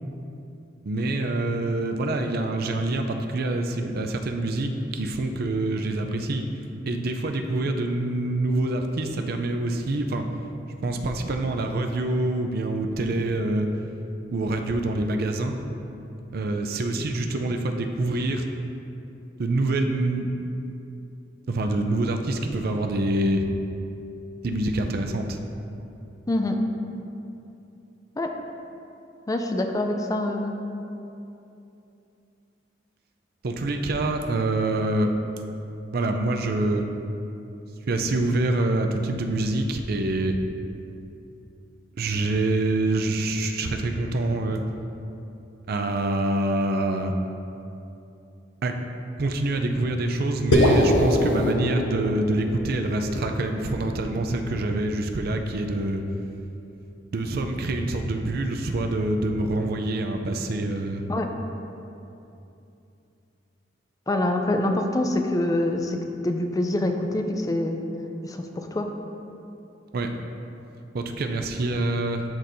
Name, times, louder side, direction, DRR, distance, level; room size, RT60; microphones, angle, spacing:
voice 1, 0.8-6.4 6.8-10.2 10.8-13.7 14.3-15.6 16.3-18.4 19.4-20.3 21.5-23.5 24.4-25.4 33.4-35.1 35.9-36.9 37.9-40.4 42.0-44.6 45.7-47.1 48.6-48.7 49.2-56.0 57.1-61.0 69.9-70.1 70.9-72.2, right 2 dB, 55° right, 5 dB, 0.5 m, -26 dB
voice 2, 26.3-26.6 28.2-28.3 29.3-30.6 61.1-61.3 64.1-66.0 66.2-67.8 68.2-68.9, left 1 dB, 20° left, 4 dB, 0.4 m, -25 dB
sound 1, 50.5-54.9, left 1 dB, 85° left, 0.6 m, -24 dB
12.0 x 4.3 x 2.6 m, 2.8 s
head